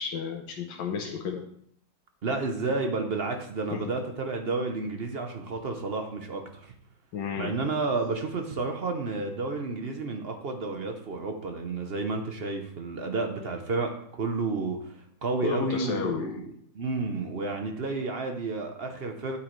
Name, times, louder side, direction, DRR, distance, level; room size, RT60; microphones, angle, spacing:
voice 1, 0.0-1.4 3.7-3.8 7.1-7.5 15.4-16.4, left 6 dB, 85° left, 1 dB, 1.6 m, -32 dB
voice 2, 2.2-6.7 7.4-16.5 16.7-19.4, right 3 dB, 45° right, 4 dB, 0.8 m, -31 dB
8.8 x 8.2 x 3.1 m, 0.66 s
omnidirectional pair, 1.9 m